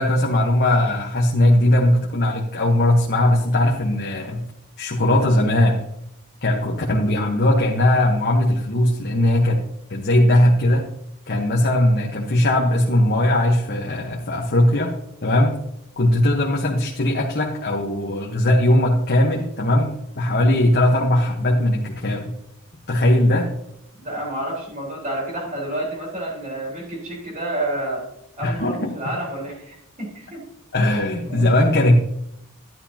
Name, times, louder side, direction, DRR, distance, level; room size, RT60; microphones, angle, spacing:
voice 1, 0.0-4.4 4.8-5.8 6.4-9.6 9.9-10.8 11.3-14.9 15.2-15.6 16.0-19.9 20.1-22.3 22.9-23.5 28.4-28.9 30.7-32.0, left 1 dB, 45° left, -1 dB, 1.2 m, -19 dB
voice 2, 24.0-28.1 28.4-30.4 31.3-31.4, right 1 dB, 35° right, -3 dB, 4.2 m, -29 dB
12.5 x 11.0 x 2.9 m, 0.77 s
head